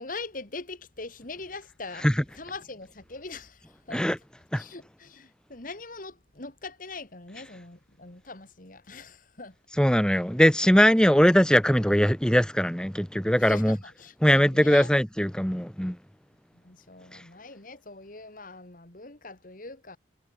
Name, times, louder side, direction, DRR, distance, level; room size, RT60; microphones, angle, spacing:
voice 1, 0.0-2.1 2.3-4.1 4.6-9.5 13.4-14.9 16.5-20.0, left 3 dB, 50° left, 2.6 m, -42 dB
voice 2, 9.8-13.8 14.2-16.0, equal, 5° left, 1.5 m, -21 dB
head